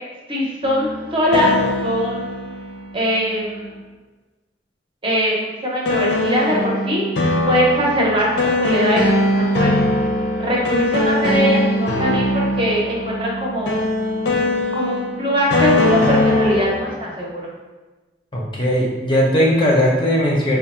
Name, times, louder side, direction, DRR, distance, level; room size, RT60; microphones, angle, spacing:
voice 1, 0.3-2.3 2.9-3.8 5.0-7.0 7.5-9.0 9.3-9.8 10.4-13.7 14.7-17.5, equal, 30° right, -3 dB, 0.7 m, -21 dB
sound 1, 0.6-3.6 5.9-16.9, left 1 dB, 85° left, 0.6 m, -21 dB
voice 2, 18.3-20.6, equal, 25° left, -3 dB, 0.5 m, -18 dB
3.5 x 2.1 x 4.2 m, 1.2 s
head